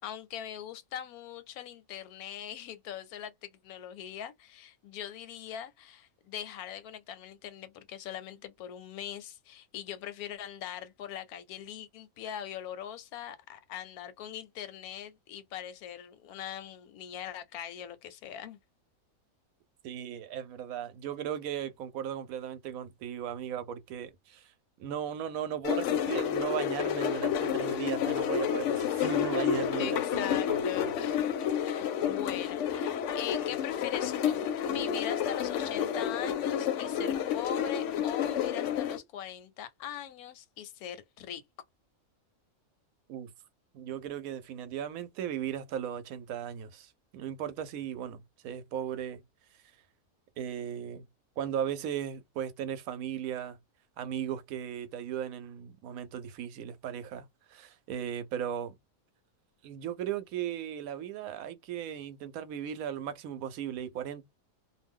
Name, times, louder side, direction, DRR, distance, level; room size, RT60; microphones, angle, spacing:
voice 1, 0.0-18.6 29.8-41.4, left 10 dB, 85° left, 1.1 m, -41 dB
voice 2, 19.8-24.5 24.8-30.9 32.0-32.2 43.1-43.3 43.7-48.2 48.4-49.2 50.4-51.0 51.4-53.6 54.0-58.7 59.6-64.2, right 9 dB, 75° right, 1.0 m, -37 dB
sound 1, 25.6-39.0, left 8 dB, 65° left, 0.8 m, -30 dB
2.6 x 2.1 x 3.4 m
omnidirectional pair, 1.5 m